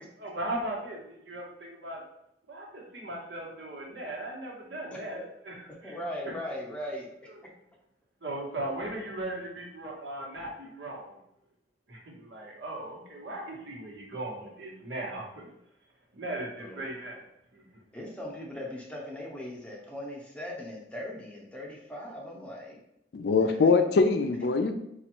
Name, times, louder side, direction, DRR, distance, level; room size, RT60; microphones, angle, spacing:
voice 1, 0.2-2.0 2.5-5.5 5.8-6.0 6.2-6.3 7.3-7.4 8.2-11.2 11.9-15.5 16.1-17.2 17.5-17.6, right 1 dB, 85° right, -2 dB, 1.0 m, -38 dB
voice 2, 5.8-7.1 16.6-16.8 17.9-22.8 23.5-23.9, left 1 dB, 5° left, -3 dB, 0.7 m, -39 dB
voice 3, 23.1-24.7, left 4 dB, 60° left, 6 dB, 0.4 m, -23 dB
4.3 x 2.4 x 2.9 m, 0.80 s
head